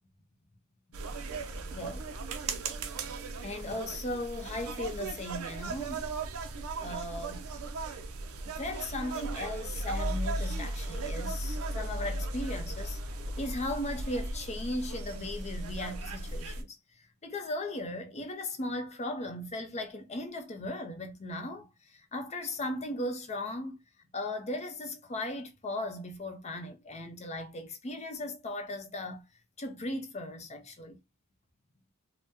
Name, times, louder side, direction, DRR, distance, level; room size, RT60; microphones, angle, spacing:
sound 1, 0.9-16.6, right 2 dB, 70° right, 0.5 m, -36 dB
voice 1, 1.7-2.1 3.4-6.1 6.8-7.4 8.4-16.8 17.2-23.8 24.1-29.2 29.6-31.0, left 1 dB, 30° left, 0.6 m, -37 dB
2.7 x 2.1 x 3.5 m
head